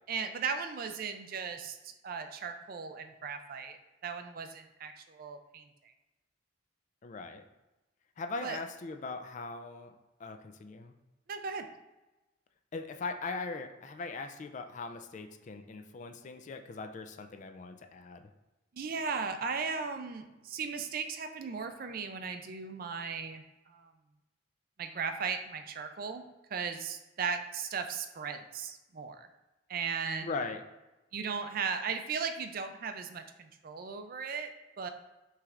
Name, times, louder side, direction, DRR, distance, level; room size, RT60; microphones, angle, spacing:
voice 1, 0.1-3.8 4.0-5.7 8.4-8.6 11.3-11.6 18.7-23.9 24.8-26.2 26.5-29.3 29.7-30.3 31.1-34.5 34.8-34.9, right 5 dB, 50° right, 7 dB, 0.4 m, -37 dB
voice 2, 7.0-7.4 8.2-9.9 10.2-10.9 12.7-18.3 30.2-30.6, left 3 dB, 40° left, 7 dB, 0.3 m, -40 dB
5.8 x 3.2 x 2.5 m, 1.1 s
head